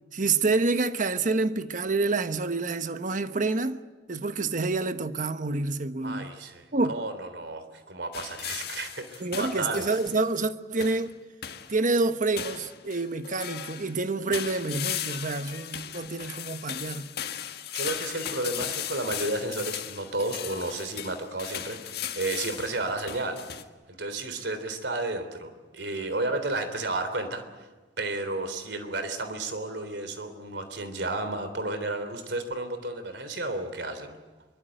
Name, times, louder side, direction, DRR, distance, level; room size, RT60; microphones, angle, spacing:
voice 1, 0.1-3.8 4.1-6.3 6.7-6.9 9.2-11.1 11.7-17.1, right 3 dB, 45° right, 1.2 m, -28 dB
voice 2, 6.0-9.9 17.7-23.4 23.9-27.7 28.0-34.2, right 2 dB, 70° right, 3.6 m, -32 dB
sound 1, 8.1-10.3 10.8-11.1 11.4-11.8 12.4-13.9 14.3-23.6, left 10 dB, 60° left, 1.7 m, -37 dB
24.5 x 23.0 x 9.2 m
head